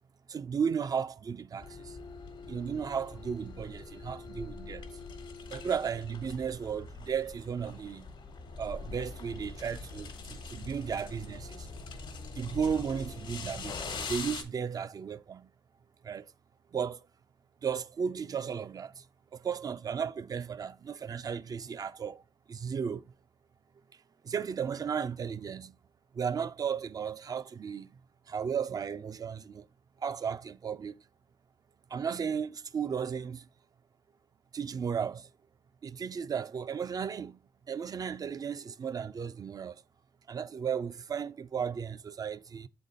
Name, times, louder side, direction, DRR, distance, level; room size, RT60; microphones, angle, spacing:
voice 1, 0.3-1.9 2.5-4.9 5.5-8.1 8.6-11.7 12.4-15.5 16.0-16.3 16.7-17.0 17.6-19.0 19.3-22.2 22.5-23.0 24.2-25.7 26.1-27.9 28.3-29.6 30.0-30.9 31.9-33.4 34.5-35.3 35.8-37.4 37.7-39.8 40.3-42.7, right 7 dB, 50° right, 0.3 m, -35 dB
sound 1, 1.6-14.4, left 4 dB, 80° left, 1.1 m, -43 dB
7.3 x 4.0 x 3.6 m
cardioid pair, 85°, 8 cm